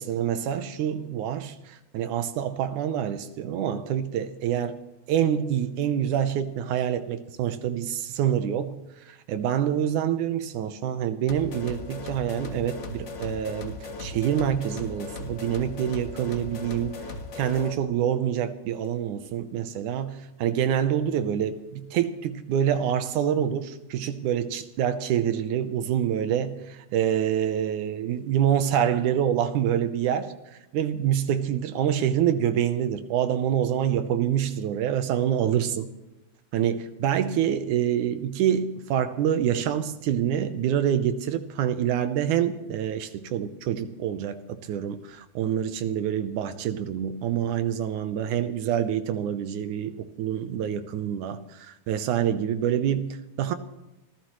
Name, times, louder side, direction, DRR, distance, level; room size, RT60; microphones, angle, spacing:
voice 1, 0.0-4.8 5.1-8.8 9.1-17.0 17.4-30.3 30.7-35.9 36.5-53.6, right 9 dB, 80° right, 2.3 m, -26 dB
sound 1, 11.3-17.8, left 3 dB, 45° left, 1.9 m, -37 dB
27.5 x 15.0 x 3.1 m
omnidirectional pair, 3.6 m